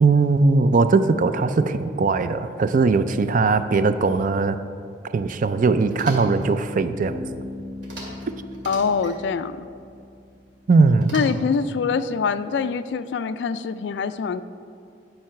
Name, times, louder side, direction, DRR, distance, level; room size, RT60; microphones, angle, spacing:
voice 1, 0.0-4.6 5.1-7.2 10.7-11.1, right 4 dB, 45° right, 11 dB, 0.4 m, -19 dB
sound 1, 5.9-6.5 7.8-8.3 8.5-9.2 11.0-11.6, right 1 dB, 75° right, 2.2 m, -39 dB
Bass guitar, 7.0-10.8, left 2 dB, 15° right, 1.2 m, -39 dB
voice 2, 8.7-9.7 11.1-14.4, left 5 dB, 65° left, 13 dB, 0.3 m, -24 dB
10.5 x 4.5 x 5.8 m, 2.4 s
head